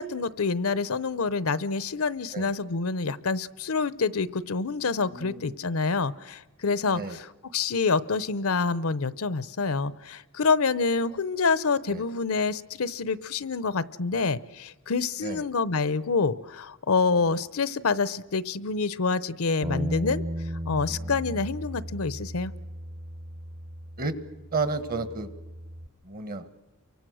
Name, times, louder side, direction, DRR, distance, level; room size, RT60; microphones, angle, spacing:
voice 1, 0.0-7.3 7.5-20.2 20.7-22.5, left 4 dB, 70° left, 17 dB, 0.8 m, -27 dB
voice 2, 5.1-5.5 6.9-7.2 11.9-12.0 15.2-15.4 20.9-21.1 24.0-24.1 24.5-25.3 26.0-26.5, right 3 dB, 45° right, 12 dB, 1.4 m, -32 dB
Bass guitar, 19.6-25.9, equal, 20° right, 0.8 m, -36 dB
29.5 x 24.0 x 6.3 m, 1.1 s
head